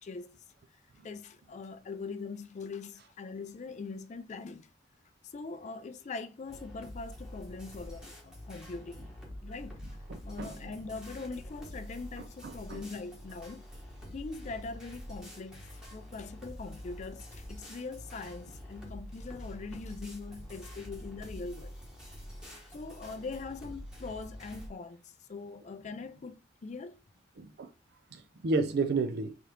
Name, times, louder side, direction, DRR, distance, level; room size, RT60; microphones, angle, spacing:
voice 1, 0.0-0.3 1.0-4.7 5.2-9.1 9.4-9.8 10.2-13.6 14.1-21.8 22.7-27.0, left 4 dB, 40° left, 0.4 m, -42 dB
sound 1, 6.5-24.7, equal, 5° right, 1.1 m, -46 dB
voice 2, 10.1-10.6 12.4-12.8 27.4-27.7 28.1-29.4, right 3 dB, 60° right, 0.5 m, -32 dB
3.7 x 3.0 x 3.3 m
head